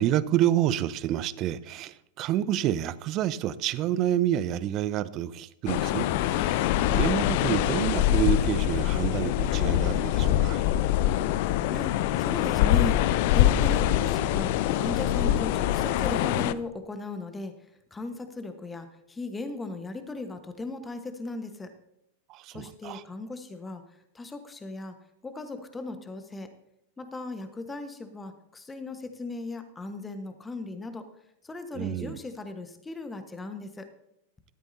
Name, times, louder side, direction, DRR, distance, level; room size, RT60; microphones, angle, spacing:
voice 1, 0.0-10.6 22.3-23.0 31.7-32.2, right 12 dB, 35° right, 0.6 m, -28 dB
sound 1, 5.7-16.5, left 12 dB, 50° left, 0.5 m, -24 dB
voice 2, 12.2-17.5 17.9-21.7 22.5-23.8 24.1-24.9 25.2-26.5 27.0-31.1 31.4-33.9, left 3 dB, 10° left, 1.2 m, -37 dB
14.0 x 12.5 x 2.7 m
figure-of-eight pair, 90°, 0 cm